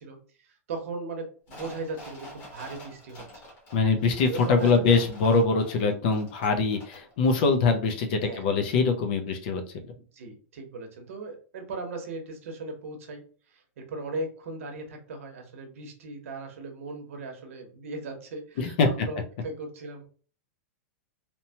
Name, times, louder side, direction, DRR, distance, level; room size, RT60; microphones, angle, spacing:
voice 1, 0.0-3.2 4.3-5.0 8.2-8.5 10.1-20.0, right 3 dB, 65° right, 4 dB, 0.8 m, -38 dB
sound 1, 1.5-7.1 7.4-7.5, left 1 dB, 25° left, 0.9 m, -47 dB
voice 2, 3.7-9.6 18.6-19.1, left 4 dB, 40° left, 5 dB, 0.4 m, -23 dB
2.8 x 2.1 x 2.8 m, 0.41 s
supercardioid pair, 180°, 8 cm